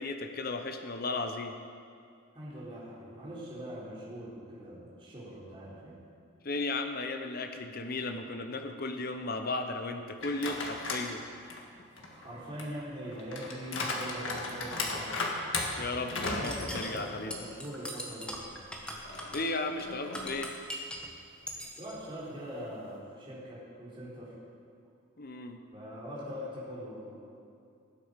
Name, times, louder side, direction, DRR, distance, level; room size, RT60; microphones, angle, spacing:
voice 1, 0.0-1.5 6.4-11.2 15.8-17.3 19.3-20.5 25.2-25.6, left 3 dB, 45° left, 6 dB, 0.8 m, -35 dB
voice 2, 2.3-6.0 12.1-15.2 16.0-18.8 21.8-24.4 25.7-27.2, equal, 25° right, -9 dB, 3.7 m, -42 dB
sound 1, 10.2-11.1 11.5-17.6 18.0-18.1 19.0-20.5, left 2 dB, 65° left, 1.8 m, -37 dB
sound 2, 16.2-21.1 21.5-21.9, equal, 5° left, 1.4 m, -41 dB
19.0 x 8.4 x 5.2 m, 2.4 s
head